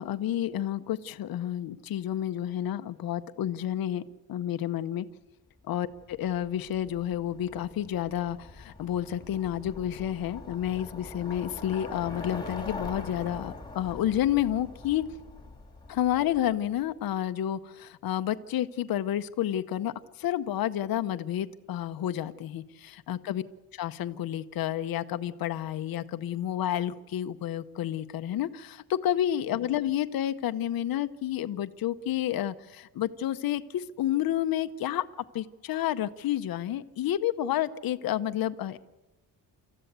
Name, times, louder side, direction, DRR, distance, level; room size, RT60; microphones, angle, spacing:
voice 1, 0.0-4.0 4.3-5.1 5.7-15.0 15.9-23.4 23.7-35.1 35.3-38.8, left 11 dB, 60° left, 11 dB, 0.8 m, -30 dB
Bicycle, 5.9-16.8, left 3 dB, 10° left, 2.0 m, -43 dB
27.5 x 14.0 x 8.1 m, 1.0 s
wide cardioid pair, 165°, 39 cm